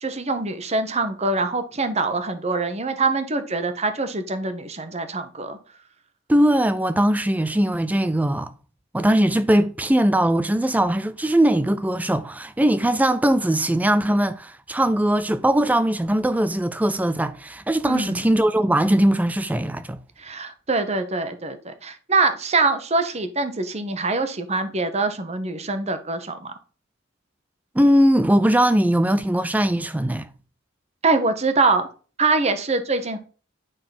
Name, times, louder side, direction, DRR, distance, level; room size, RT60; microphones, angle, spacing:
voice 1, 0.0-5.6 17.9-18.3 20.2-26.5 31.0-31.9 32.2-33.2, right 3 dB, 35° right, 1.0 m, -24 dB
voice 2, 6.3-8.5 8.9-20.0 27.8-30.3, right 1 dB, 10° right, 0.3 m, -20 dB
9.1 x 3.9 x 5.7 m
head